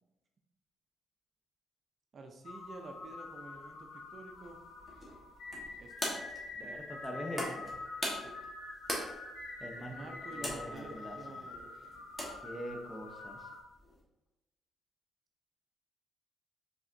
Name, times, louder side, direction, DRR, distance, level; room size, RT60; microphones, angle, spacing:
voice 1, 2.1-4.6 5.8-5.9 6.6-6.8 8.2-8.3 9.8-11.9 12.2-12.4, right 3 dB, 45° right, 3 dB, 0.5 m, -50 dB
sound 1, 2.4-13.6, left 3 dB, 85° left, 0.8 m, -46 dB
sound 2, 4.3-14.0, left 1 dB, 20° left, 1.3 m, -43 dB
voice 2, 6.5-7.8 9.6-9.9 10.4-11.5 12.4-13.4, equal, 5° left, 2 dB, 0.8 m, -43 dB
4.8 x 3.5 x 2.6 m, 0.95 s
cardioid pair, 90°, 0 cm